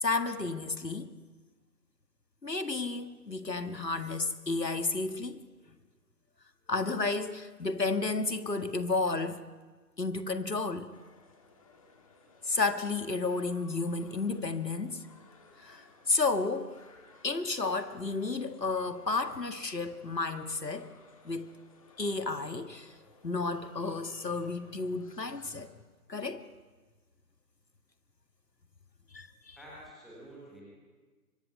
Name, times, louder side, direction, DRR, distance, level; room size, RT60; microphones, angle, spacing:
voice 1, 0.0-1.1 2.4-5.4 6.7-9.4 10.0-10.9 12.4-15.0 15.6-16.8 17.2-20.9 21.2-21.5 22.0-22.9 23.2-25.7 26.1-26.4 29.1-29.6, left 3 dB, 80° left, 9 dB, 1.9 m, -32 dB
sound 1, 10.9-25.6, left 3 dB, 20° left, 1.9 m, -59 dB
voice 2, 29.5-30.6, right 1 dB, ahead, -6 dB, 1.4 m, -49 dB
24.0 x 17.5 x 9.4 m, 1.4 s
figure-of-eight pair, 155°, 49 cm